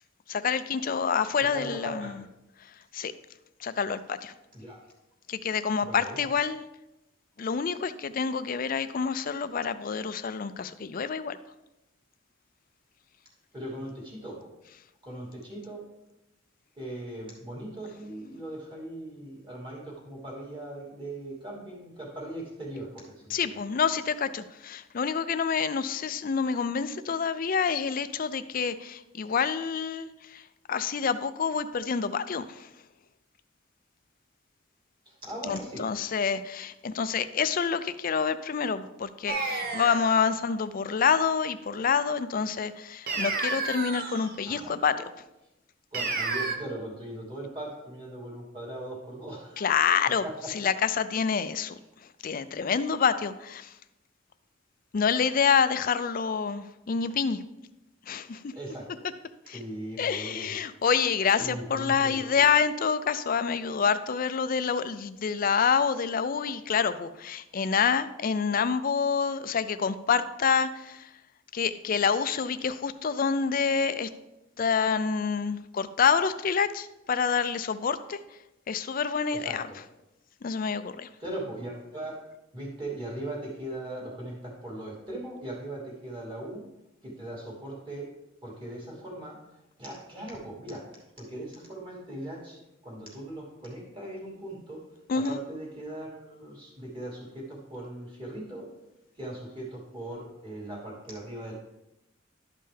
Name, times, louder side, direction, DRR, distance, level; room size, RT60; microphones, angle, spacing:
voice 1, 0.3-2.1 2.9-3.1 3.6-4.3 5.3-6.7 7.4-11.4 23.3-30.4 30.7-32.7 35.4-45.0 49.6-50.2 50.5-51.8 52.2-53.7 54.9-57.4 58.1-58.5 59.5-59.6 60.0-71.1 71.5-74.1 74.6-78.2 78.7-79.6 80.4-81.1 95.1-95.4, left 6 dB, 45° left, 12 dB, 0.4 m, -27 dB
voice 2, 1.5-2.3 4.5-4.8 5.8-6.3 13.5-14.5 15.0-15.8 16.7-23.5 35.0-36.0 44.4-45.0 45.9-49.8 50.2-50.3 58.5-59.0 59.5-60.6 61.4-62.4 79.3-79.8 81.2-82.2 82.5-86.6 87.0-88.1 88.4-89.4 89.8-90.8 91.2-94.8 95.1-98.7 99.2-101.5, right 1 dB, 25° right, -4 dB, 2.8 m, -39 dB
sound 1, 39.3-40.2 43.1-44.3 45.9-46.5, right 3 dB, 50° right, 0.9 m, -31 dB
12.0 x 5.5 x 3.4 m, 0.93 s
head